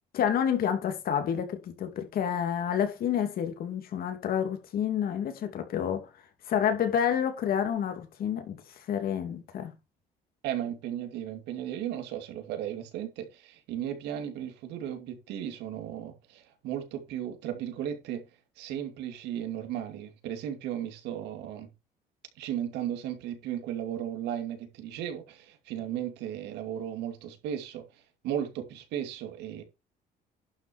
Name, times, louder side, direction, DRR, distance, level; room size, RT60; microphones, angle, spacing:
voice 1, 0.1-6.1 6.5-9.7, left 8 dB, 60° left, 2.8 m, -29 dB
voice 2, 10.4-18.2 18.6-21.7 22.4-27.8 28.2-29.6, right 10 dB, 90° right, 2.5 m, -35 dB
11.5 x 6.0 x 4.5 m
cardioid pair, 110°, 17 cm